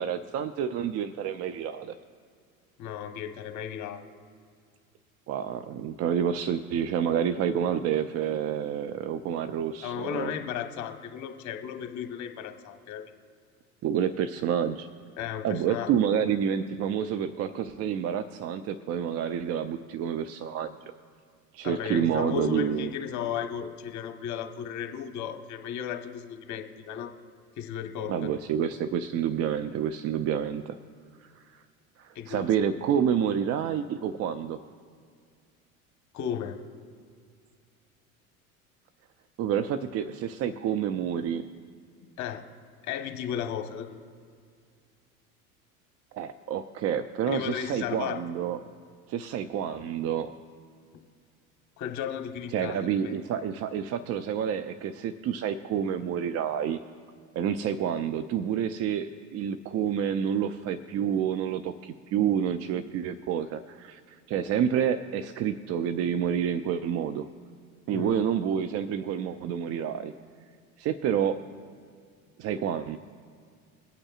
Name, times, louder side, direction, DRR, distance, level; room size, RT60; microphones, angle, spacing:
voice 1, 0.0-1.9 5.3-10.4 13.8-14.9 15.4-20.7 21.5-22.9 28.1-30.8 31.2-31.6 32.0-34.6 39.4-41.5 46.1-48.6 49.1-50.3 52.5-56.8 57.3-67.3 67.9-70.1 70.8-71.4 72.4-73.0, right 8 dB, 35° right, 11 dB, 0.5 m, -29 dB
voice 2, 2.8-4.0 9.8-13.0 15.2-16.2 21.6-27.1 27.6-28.3 32.1-32.4 36.1-36.6 42.2-42.4 42.8-44.0 47.3-48.2 50.9-51.0 51.8-53.2 67.9-68.2, left 8 dB, 40° left, 5 dB, 1.2 m, -35 dB
22.0 x 8.7 x 2.4 m, 2.1 s
hypercardioid pair, 75°, 42 cm